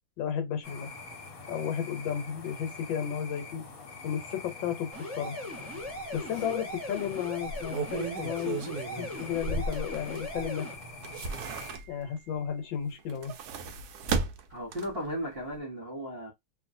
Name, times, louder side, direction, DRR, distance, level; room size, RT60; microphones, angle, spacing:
voice 1, 0.2-0.9 1.5-3.6 4.0-5.4 6.1-8.7 9.0-10.7 11.9-13.3, left 8 dB, 75° left, 1.4 m, -33 dB
sound 1, 0.6-11.8, left 4 dB, 55° left, 1.2 m, -45 dB
sound 2, 4.9-10.7, equal, 15° right, 0.5 m, -40 dB
sound 3, 5.8-5.9 6.3-6.4 7.4-10.4 10.8-12.2 13.0-15.1 15.5-15.6, right 4 dB, 75° right, 0.9 m, -35 dB
voice 2, 14.5-16.3, equal, 40° right, 1.0 m, -35 dB
2.9 x 2.6 x 2.5 m
omnidirectional pair, 2.1 m